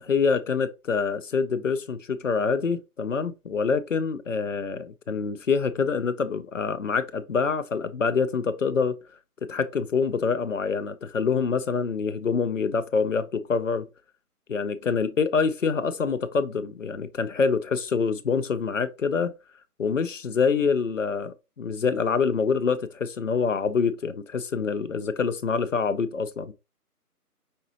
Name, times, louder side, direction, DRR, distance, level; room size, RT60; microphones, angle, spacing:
voice 1, 0.1-9.0 9.4-13.9 14.5-19.3 19.8-26.5, left 5 dB, 55° left, 0.7 m, -26 dB
5.4 x 3.5 x 2.8 m
figure-of-eight pair, 170°, 47 cm